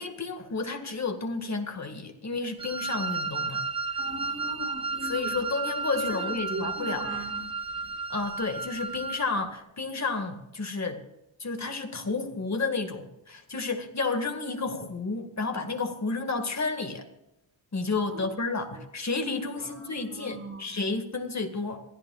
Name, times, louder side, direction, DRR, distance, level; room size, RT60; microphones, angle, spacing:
voice 1, 0.0-3.7 5.0-7.1 8.1-11.0 11.4-17.1 17.7-21.8, left 3 dB, 35° left, 6 dB, 1.8 m, -31 dB
Wind instrument woodwind instrument, 2.6-9.3, right 4 dB, 10° right, 1.3 m, -33 dB
voice 2, 4.0-5.3 5.9-7.4 7.7-7.9 18.1-18.4 18.6-18.8 19.5-20.7, right 2 dB, 30° right, -2 dB, 6.5 m, -40 dB
26.5 x 15.0 x 2.4 m, 0.91 s
wide cardioid pair, 150°, 49 cm